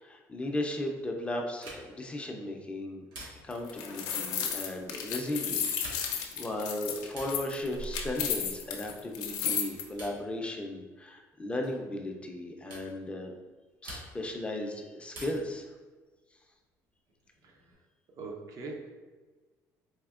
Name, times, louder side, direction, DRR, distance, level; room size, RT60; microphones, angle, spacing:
voice 1, 0.0-3.0 3.4-13.3 13.8-15.7, left 1 dB, 20° left, 2 dB, 0.4 m, -36 dB
sound 1, 1.6-2.1 3.1-3.7 5.7-6.3 7.1-7.5 8.7-9.1 10.0-10.3 11.6-11.8 12.7-12.9 13.8-14.4 15.1-15.6 17.1-17.7, right 1 dB, 85° right, 1.0 m, -47 dB
sound 2, 3.5-9.8, left 7 dB, 80° left, 0.5 m, -33 dB
voice 2, 18.2-18.9, right 3 dB, 60° right, 2 dB, 0.6 m, -41 dB
4.2 x 2.7 x 2.4 m, 1.3 s
cardioid pair, 110°, 6 cm